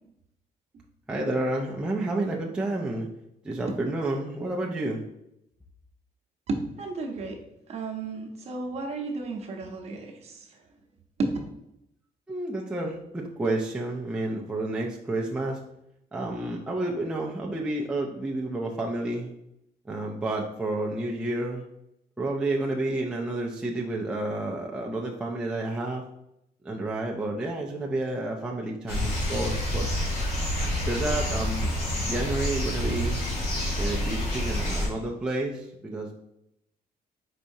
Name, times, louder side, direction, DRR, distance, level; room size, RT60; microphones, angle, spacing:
voice 1, 1.1-3.1 3.4-5.0 12.3-15.6 16.1-19.3 19.9-21.7 22.2-26.0 26.6-29.9 30.9-31.7 32.1-33.2 33.8-36.1, right 2 dB, 5° right, -2 dB, 0.4 m, -30 dB
voice 2, 6.5-7.4 7.7-10.4 11.2-11.3, right 3 dB, 40° right, 2 dB, 0.8 m, -33 dB
sound 1, 28.9-34.9, left 1 dB, 80° left, 1.8 m, -28 dB
4.6 x 4.1 x 2.6 m, 0.81 s
cardioid pair, 165°, 16 cm